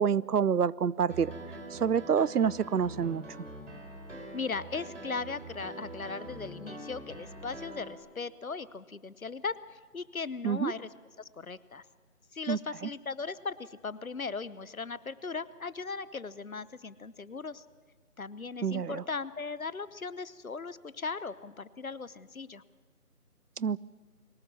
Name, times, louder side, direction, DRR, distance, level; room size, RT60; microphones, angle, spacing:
voice 1, 0.0-1.3 1.7-3.2 10.4-10.7 12.5-12.6 18.6-19.0 23.6-23.8, right 7 dB, 80° right, 23 dB, 0.6 m, -27 dB
Piano, 1.1-7.9, right 1 dB, 50° right, 4.1 m, -44 dB
voice 2, 4.3-10.9 11.2-11.8 12.3-17.6 18.2-22.6, left 4 dB, 60° left, 17 dB, 1.0 m, -38 dB
22.5 x 19.5 x 7.2 m, 1.5 s
figure-of-eight pair, 175°, 46 cm